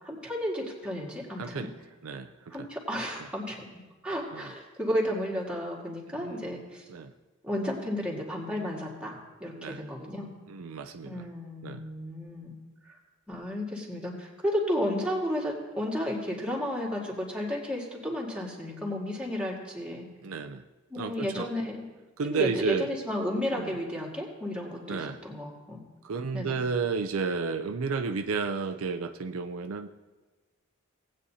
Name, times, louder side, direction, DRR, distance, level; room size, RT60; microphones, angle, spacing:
voice 1, 0.0-1.7 2.5-6.8 7.4-10.3 11.0-12.5 12.8-13.0 13.3-20.0 20.9-21.8 22.2-25.8 26.3-26.6, equal, 5° right, -3 dB, 1.9 m, -33 dB
voice 2, 1.4-2.7 4.3-4.5 6.1-6.5 6.9-7.1 9.5-9.8 10.5-11.2 11.6-11.9 20.2-20.6 21.0-21.5 22.2-22.9 23.5-23.8 24.9-25.2 26.0-29.9, right 5 dB, 70° right, 6 dB, 0.5 m, -32 dB
18.0 x 8.5 x 2.8 m, 1.2 s
head